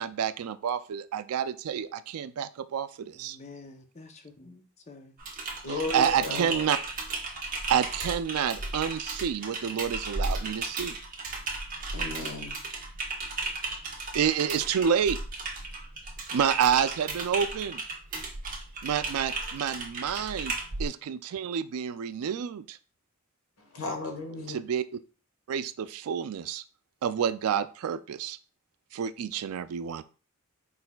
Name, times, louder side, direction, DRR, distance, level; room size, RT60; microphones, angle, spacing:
voice 1, 0.0-3.4 5.7-6.8 7.7-11.0 14.1-15.2 16.3-17.8 18.8-22.8 24.5-24.8 25.5-26.6 27.0-28.4 28.9-30.0, right 8 dB, 90° right, 0.3 m, -29 dB
voice 2, 3.1-5.1, left 3 dB, 30° left, 0.6 m, -49 dB
Typing, 5.2-20.9, right 3 dB, 40° right, 0.9 m, -35 dB
voice 3, 5.6-6.7 11.9-12.6 23.7-24.6, left 2 dB, 80° left, 1.3 m, -34 dB
4.6 x 4.1 x 2.2 m
head